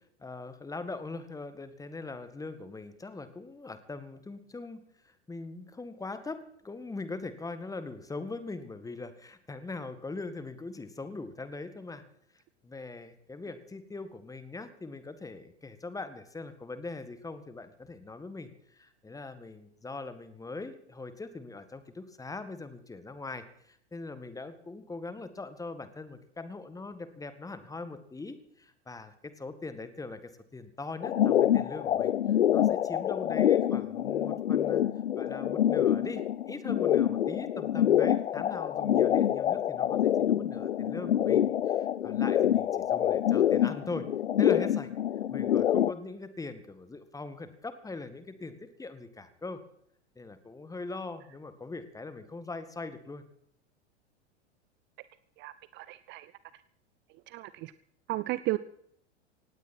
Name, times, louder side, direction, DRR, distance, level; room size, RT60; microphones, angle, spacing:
voice 1, 0.2-12.0 12.3-34.8 35.2-44.1 44.4-44.9 45.3-49.6 50.2-53.2, left 3 dB, 10° left, 12 dB, 1.8 m, -41 dB
sound 1, 31.0-45.9, left 10 dB, 75° left, 0.7 m, -26 dB
voice 2, 55.4-56.3 57.3-57.7 58.1-58.6, right 19 dB, 30° right, 16 dB, 0.6 m, -34 dB
18.5 x 16.5 x 4.4 m, 0.71 s
figure-of-eight pair, 90°, 35 cm